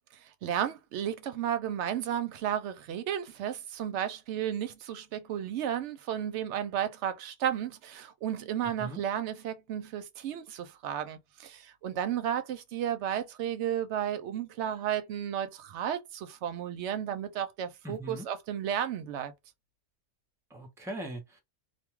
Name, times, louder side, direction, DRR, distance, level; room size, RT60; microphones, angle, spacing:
voice 1, 0.4-19.3, right 10 dB, 70° right, 0.8 m, -33 dB
voice 2, 8.6-9.0 17.8-18.3 20.5-21.4, right 1 dB, 5° right, 0.5 m, -40 dB
2.4 x 2.2 x 3.0 m
omnidirectional pair, 1.3 m